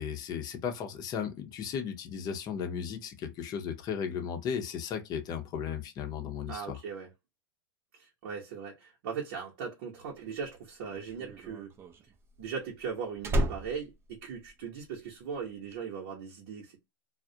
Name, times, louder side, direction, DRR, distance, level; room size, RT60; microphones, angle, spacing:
voice 1, 0.0-6.8, left 7 dB, 35° left, 0.6 m, -35 dB
voice 2, 6.5-7.1 7.9-11.7 12.4-16.8, right 6 dB, 65° right, 0.8 m, -39 dB
Slam, 10.3-15.0 15.3-15.7, equal, 20° right, 0.4 m, -34 dB
2.3 x 2.1 x 2.7 m
hypercardioid pair, 130°, 12 cm